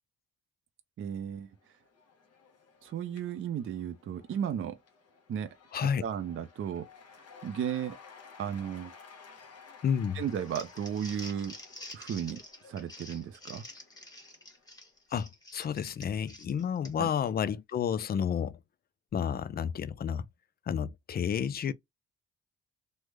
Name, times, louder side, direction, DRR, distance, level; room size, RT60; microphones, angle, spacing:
voice 1, 1.0-1.5 2.8-4.8 5.3-5.5 6.0-6.9 7.4-8.0 8.4-8.9 10.1-11.5 11.9-12.4 12.7-13.7 17.0-17.1, right 8 dB, 45° right, 0.5 m, -34 dB
Cheering / Applause / Crowd, 1.4-14.9, left 5 dB, 55° left, 1.1 m, -55 dB
voice 2, 5.7-6.0 9.8-10.2 15.1-18.6 19.1-20.3 20.7-21.7, left 8 dB, 35° left, 0.4 m, -31 dB
Crumpling crinkling, 10.3-17.2, left 1 dB, 10° left, 1.2 m, -48 dB
3.2 x 2.0 x 3.3 m
cardioid pair, 90°, 30 cm